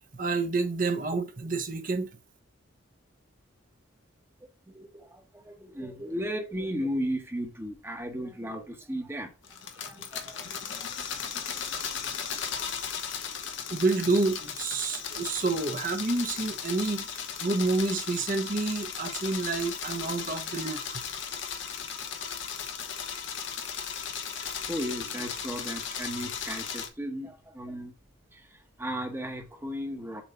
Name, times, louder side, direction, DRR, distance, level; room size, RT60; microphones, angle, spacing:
voice 1, 0.2-2.1 13.7-21.0, right 3 dB, 40° right, 0.9 m, -29 dB
voice 2, 4.7-11.4 24.4-27.9 28.3-30.2, equal, 10° right, 1.0 m, -36 dB
sound 1, 9.4-26.9, left 7 dB, 65° left, 1.0 m, -36 dB
7.1 x 3.0 x 5.5 m
head